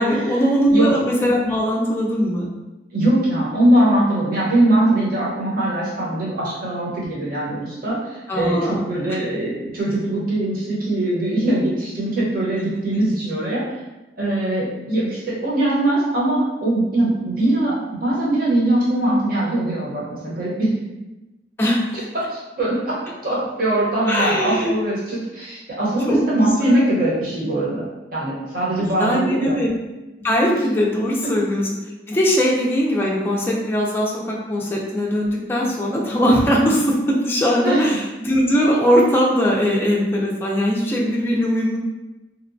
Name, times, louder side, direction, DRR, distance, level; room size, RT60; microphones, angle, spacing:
voice 1, 0.0-2.5 8.3-8.8 9.1-9.2 21.6-22.0 24.1-24.7 26.1-26.8 28.8-29.7 30.2-31.7 32.1-41.8, equal, 15° left, -4 dB, 0.3 m, -20 dB
voice 2, 2.9-8.6 8.8-13.6 14.2-17.7 18.0-20.7 22.3-22.9 23.2-27.8 28.1-29.6 37.6-37.8, right 1 dB, 55° right, -6 dB, 0.9 m, -21 dB
2.8 x 2.1 x 2.5 m, 1.0 s
head